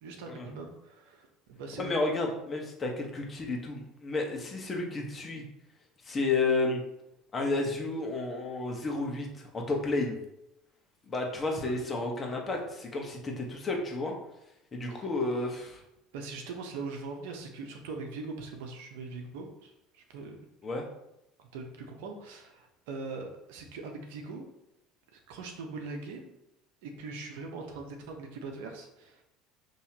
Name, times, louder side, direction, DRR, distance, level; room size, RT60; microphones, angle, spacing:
voice 1, 0.0-1.9 11.6-11.8 15.0-15.1 16.1-20.4 21.4-24.5 25.1-26.3 26.8-29.2, right 3 dB, 75° right, 3 dB, 0.8 m, -41 dB
voice 2, 1.8-5.4 6.0-6.8 7.3-10.2 11.1-14.1 14.7-15.8 20.6-20.8, left 3 dB, 30° left, 0 dB, 1.2 m, -31 dB
5.6 x 3.1 x 2.9 m, 0.86 s
hypercardioid pair, 80°, 0 cm